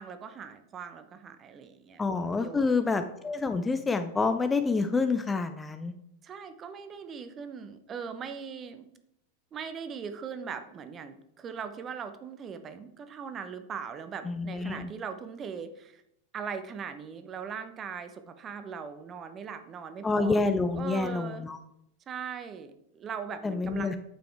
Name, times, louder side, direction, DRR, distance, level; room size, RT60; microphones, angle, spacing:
voice 1, 0.0-2.0 2.4-2.9 6.2-8.9 9.5-16.0 16.3-20.5 20.7-21.4 22.1-24.0, right 6 dB, 25° right, 9 dB, 0.8 m, -40 dB
voice 2, 2.0-5.9 14.3-14.9 20.0-21.6 23.4-24.0, left 4 dB, 15° left, 8 dB, 0.5 m, -28 dB
9.0 x 7.0 x 3.4 m, 0.77 s
figure-of-eight pair, 90°, 0 cm